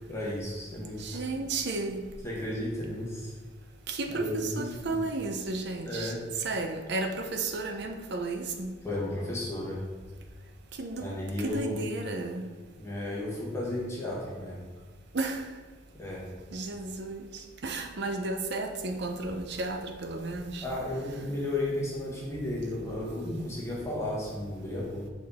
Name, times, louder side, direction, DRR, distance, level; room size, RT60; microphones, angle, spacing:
voice 1, 0.1-1.0 2.2-3.3 4.1-5.0 5.8-6.2 8.8-9.8 11.0-11.9 12.8-14.6 15.9-16.3 20.6-25.1, left 1 dB, 15° left, 1.4 m, -34 dB
voice 2, 1.0-2.0 3.9-6.1 6.4-8.7 10.8-11.1 11.4-12.5 15.1-15.4 16.5-17.3 17.6-20.6, right 3 dB, 60° right, 0.6 m, -33 dB
6.0 x 4.3 x 4.2 m
head